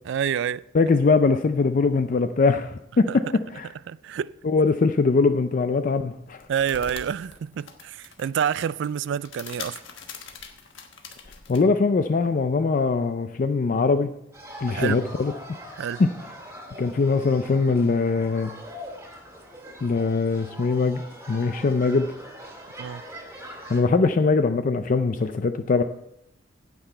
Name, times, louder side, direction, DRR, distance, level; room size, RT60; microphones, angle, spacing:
voice 1, 0.1-0.6 3.1-3.2 3.9-4.3 6.5-9.8 14.7-15.0 15.8-16.0 22.8-23.0, right 8 dB, 65° right, 0.3 m, -28 dB
voice 2, 0.7-3.1 3.5-3.7 4.4-6.4 11.5-14.1 14.6-15.3 16.0-16.1 16.8-18.5 19.8-21.0 21.3-22.1 23.7-25.8, left 4 dB, 45° left, 0.4 m, -22 dB
sound 1, 6.3-11.6, left 6 dB, 65° left, 1.3 m, -42 dB
sound 2, 14.3-23.8, equal, 15° right, 2.2 m, -42 dB
16.5 x 5.9 x 4.4 m
head